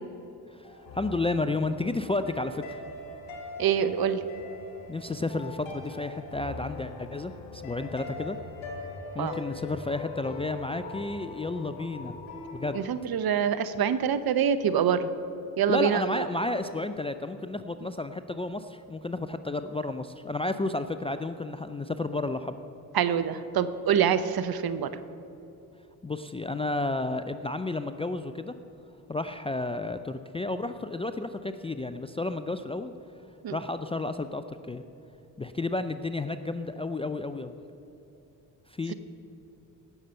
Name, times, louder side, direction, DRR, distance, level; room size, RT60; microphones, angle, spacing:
voice 1, 0.5-2.8 4.9-8.4 9.1-12.1 12.5-12.8 15.7-22.6 26.0-28.5 29.1-32.9 33.5-34.8 35.4-37.5 38.7-38.9, left 2 dB, 15° left, 9 dB, 0.4 m, -32 dB
sound 1, 0.6-12.8, left 2 dB, 75° left, 1.7 m, -42 dB
voice 2, 3.6-4.2 9.2-9.3 12.7-15.1 15.6-16.3 22.9-24.9 33.4-33.6, right 8 dB, 50° right, 12 dB, 0.8 m, -25 dB
17.5 x 6.7 x 5.6 m, 2.9 s
hypercardioid pair, 45°, 48 cm